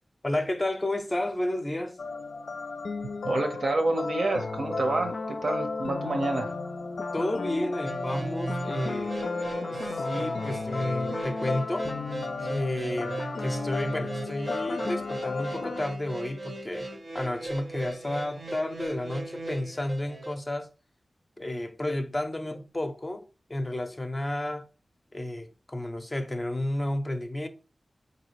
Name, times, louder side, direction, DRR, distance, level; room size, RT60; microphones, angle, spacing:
voice 1, 0.2-2.0 7.1-9.1 9.7-11.9 12.4-16.9 17.1-20.7 21.4-23.2 23.5-24.7 25.1-27.5, left 1 dB, 25° left, 0.5 m, -31 dB
sound 1, 2.0-15.8, left 3 dB, 85° left, 0.4 m, -33 dB
voice 2, 3.2-6.5, right 2 dB, 75° right, 0.9 m, -28 dB
sound 2, 7.9-20.4, right 2 dB, 50° right, 0.6 m, -37 dB
4.9 x 2.7 x 3.0 m
wide cardioid pair, 105°, 0 cm